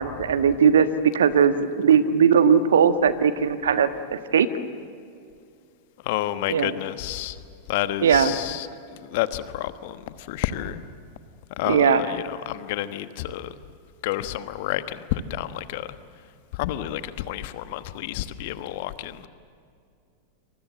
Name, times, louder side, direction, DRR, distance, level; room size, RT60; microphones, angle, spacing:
voice 1, 0.0-4.5 6.5-6.7 8.0-8.3 11.7-12.0, right 7 dB, 65° right, 11 dB, 1.5 m, -19 dB
voice 2, 6.0-7.4 7.7-10.8 11.6-13.5 14.0-16.0 16.5-19.3, left 13 dB, 50° left, 12 dB, 1.2 m, -30 dB
28.0 x 25.5 x 7.8 m, 2.4 s
figure-of-eight pair, 90°, 0 cm